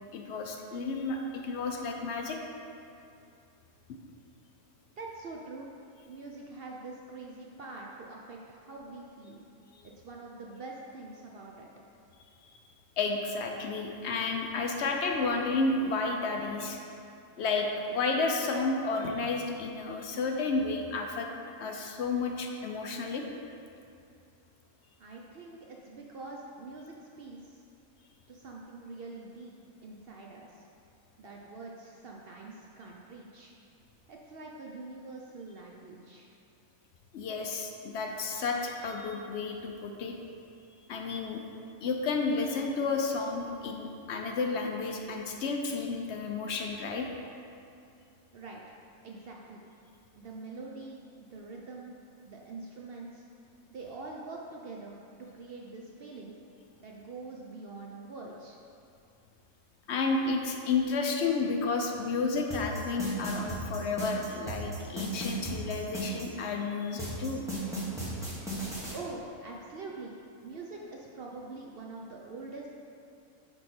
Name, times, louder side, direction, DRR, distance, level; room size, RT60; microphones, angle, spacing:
voice 1, 0.1-2.4 13.0-16.8 17.4-21.3 21.6-23.3 37.1-40.1 40.9-41.4 41.8-47.1 59.9-67.5, left 4 dB, 60° left, 2 dB, 0.8 m, -31 dB
voice 2, 5.0-5.7 6.1-9.4 9.8-11.7 25.0-27.6 28.3-29.5 29.8-30.7 31.2-33.5 34.1-36.3 48.3-48.7 49.0-49.6 50.2-51.9 52.2-53.2 53.7-56.3 56.8-58.6 68.9-70.2 70.4-72.7, right 3 dB, 65° right, -1 dB, 0.6 m, -44 dB
sound 1, 62.5-66.3 67.0-68.9, equal, ahead, 1.2 m, -35 dB
8.8 x 3.2 x 4.3 m, 2.6 s
omnidirectional pair, 1.5 m